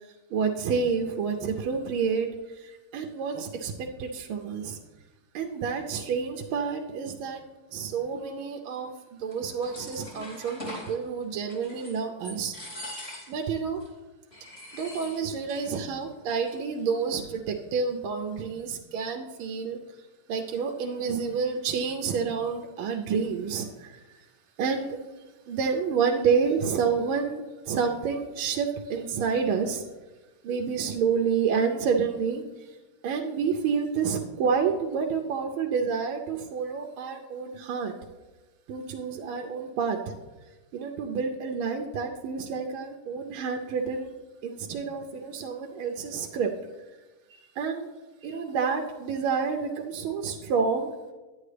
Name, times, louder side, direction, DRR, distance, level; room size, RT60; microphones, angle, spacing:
voice 1, 0.0-4.8 5.3-7.4 7.7-12.5 13.3-13.8 14.7-24.3 24.6-25.0 25.5-29.8 30.4-32.8 33.0-37.9 38.7-40.1 40.7-44.1 44.4-46.5 47.3-47.9 48.2-50.9, right 6 dB, 80° right, 2 dB, 1.4 m, -29 dB
sound 1, 9.3-10.9 11.5-12.0 12.2-13.5 13.8-13.9 14.3-15.7 15.9-16.0 16.3-16.8, left 1 dB, 30° left, 2.7 m, -42 dB
10.0 x 8.6 x 3.3 m, 1.2 s
omnidirectional pair, 2.4 m